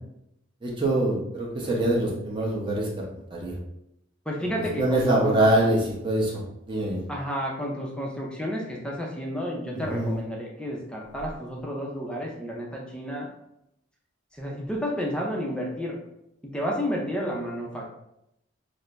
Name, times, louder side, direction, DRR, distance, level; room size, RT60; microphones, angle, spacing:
voice 1, 0.6-2.9 3.3-3.5 4.8-6.3 6.7-7.1 9.7-10.2, right 1 dB, 25° right, -3 dB, 0.9 m, -24 dB
voice 2, 4.3-5.7 7.1-13.3 14.3-16.0 16.4-17.9, equal, 5° left, -2 dB, 0.6 m, -31 dB
6.3 x 2.2 x 2.5 m, 0.82 s
head